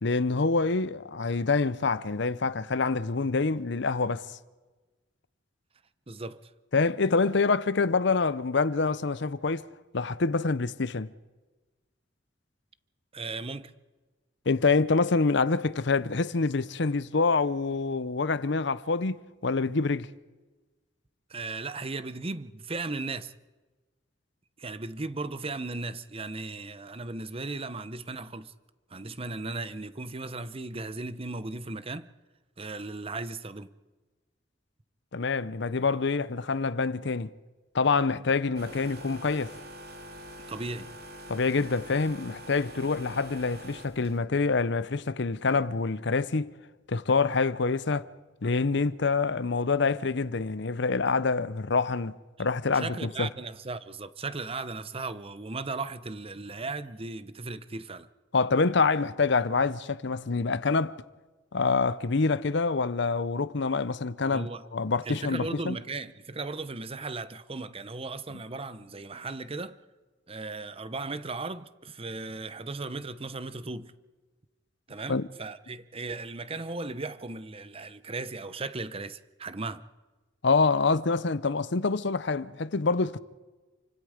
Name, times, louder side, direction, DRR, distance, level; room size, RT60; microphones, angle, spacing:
voice 1, 0.0-4.3 6.7-9.6 9.9-11.1 14.5-19.2 19.4-20.1 35.1-37.3 37.7-39.5 41.3-46.5 46.9-48.1 48.4-52.1 52.4-53.3 58.3-61.0 61.5-65.8 75.1-75.3 80.4-83.2, left 4 dB, 65° left, 0.8 m, -26 dB
voice 2, 6.1-6.5 13.1-13.7 21.3-23.3 24.6-28.5 28.9-32.1 32.6-33.7 40.5-40.9 52.4-52.5 52.7-58.1 64.3-64.6 65.0-69.8 70.3-73.9 74.9-79.8, right 3 dB, 30° right, 0.9 m, -36 dB
sound 1, 38.6-44.2, equal, 55° right, 2.5 m, -45 dB
28.5 x 25.0 x 5.1 m
head